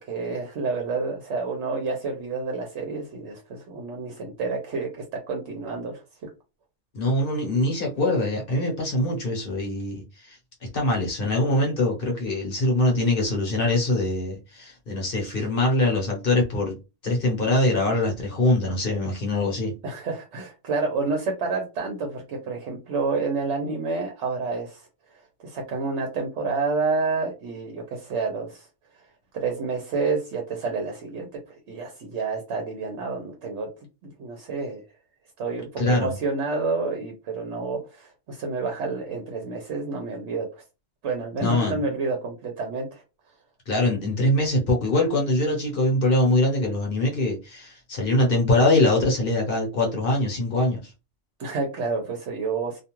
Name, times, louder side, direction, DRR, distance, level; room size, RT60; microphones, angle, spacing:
voice 1, 0.0-6.0 19.8-24.9 25.4-28.7 29.3-33.7 34.0-34.8 35.4-40.6 41.0-43.0 51.4-52.8, right 4 dB, 65° right, 0.9 m, -29 dB
voice 2, 6.9-10.4 10.7-16.8 17.0-19.7 35.8-36.1 41.4-41.8 43.7-50.8, left 1 dB, 50° left, 0.9 m, -23 dB
2.4 x 2.3 x 2.9 m
omnidirectional pair, 1.4 m